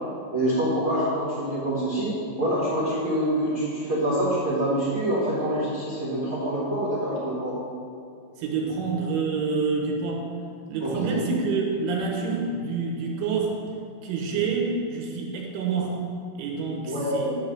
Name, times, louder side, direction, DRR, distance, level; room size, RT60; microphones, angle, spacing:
voice 1, 0.3-7.6 10.8-11.2 16.8-17.3, right 1 dB, 45° right, -9 dB, 1.8 m, -26 dB
voice 2, 8.4-10.3 10.7-13.6 14.0-16.0 16.4-17.3, right 4 dB, 80° right, -1 dB, 3.7 m, -27 dB
11.0 x 4.8 x 7.8 m, 2.3 s
omnidirectional pair, 5.7 m